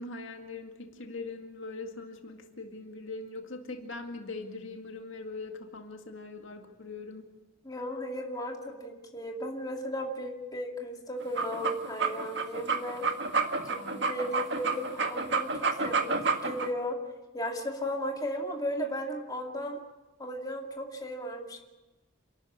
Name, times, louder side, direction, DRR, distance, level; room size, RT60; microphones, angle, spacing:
voice 1, 0.0-7.3 13.6-14.1, left 3 dB, 70° left, 4 dB, 2.1 m, -41 dB
voice 2, 7.6-13.0 13.7-15.5 15.8-17.0 17.3-19.8 20.2-21.6, equal, 20° left, 1 dB, 2.5 m, -35 dB
sound 1, 11.2-16.7, right 4 dB, 60° right, 1.8 m, -29 dB
28.0 x 12.5 x 9.7 m, 1.1 s
head